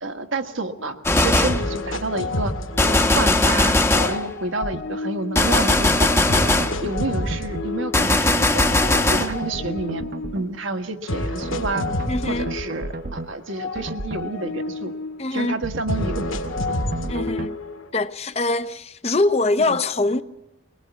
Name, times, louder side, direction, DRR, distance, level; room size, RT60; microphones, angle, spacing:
voice 1, 0.0-2.5 2.9-6.4 6.8-8.7 9.1-10.0 10.3-11.9 12.3-14.9 15.3-16.7 19.7-19.8, right 2 dB, 75° right, 1.7 m, -29 dB
sound 1, 0.8-0.9 1.5-3.5 3.9-5.7 6.3-8.3 8.7-10.5 11.1-13.2 13.5-15.3 15.9-17.9, left 2 dB, 80° left, 1.9 m, -30 dB
Gunshot gunfire, 1.1-1.7 2.8-4.2 5.4-6.8 7.9-9.4, left 2 dB, 10° left, 1.0 m, -19 dB
sound 2, 4.6-4.8 5.8-7.7 8.6-10.5 11.4-13.3 13.8-14.3 15.6-17.5, right 2 dB, 45° right, 0.8 m, -33 dB
voice 2, 12.1-12.5 15.2-15.6 17.1-17.6 17.9-20.2, left 2 dB, 30° left, 0.8 m, -23 dB
23.0 x 19.0 x 8.4 m
head